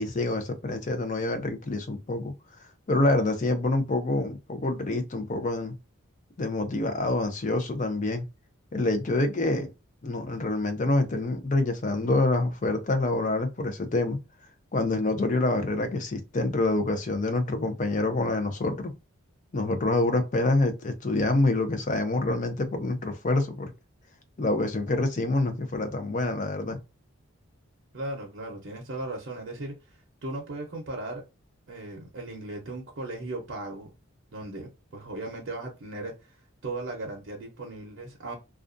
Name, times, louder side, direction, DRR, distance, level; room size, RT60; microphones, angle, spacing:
voice 1, 0.0-2.3 2.9-5.8 6.4-8.2 8.7-9.7 10.0-14.2 14.7-18.9 19.5-23.7 24.4-26.8, left 2 dB, 35° left, 0.5 m, -26 dB
voice 2, 27.9-29.7 30.2-31.2 31.7-33.9 34.3-36.1 36.6-38.3, right 2 dB, 55° right, 0.6 m, -37 dB
2.4 x 2.2 x 2.5 m
head